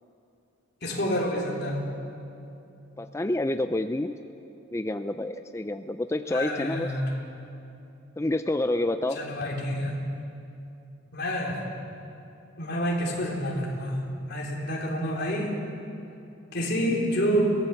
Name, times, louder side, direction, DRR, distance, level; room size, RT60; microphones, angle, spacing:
voice 1, 0.8-1.8 6.3-7.1 9.1-10.0 11.1-11.6 12.6-14.0 14.2-15.5 16.5-17.6, equal, 55° left, -2 dB, 3.5 m, -28 dB
voice 2, 3.0-4.2 4.7-6.9 8.2-9.2, left 1 dB, 15° left, 8 dB, 0.4 m, -28 dB
22.5 x 17.5 x 7.0 m, 2.7 s
head